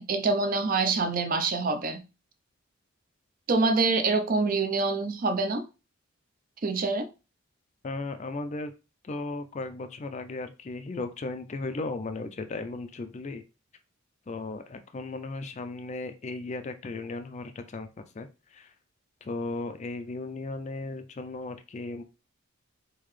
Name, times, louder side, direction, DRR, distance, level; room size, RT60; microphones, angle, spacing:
voice 1, 0.0-2.0 3.5-5.7 6.6-7.1, right 3 dB, 40° right, 0.4 m, -26 dB
voice 2, 7.8-8.7 9.0-13.4 14.3-18.7 19.2-22.0, left 3 dB, 30° left, 0.3 m, -36 dB
3.8 x 2.7 x 3.1 m
head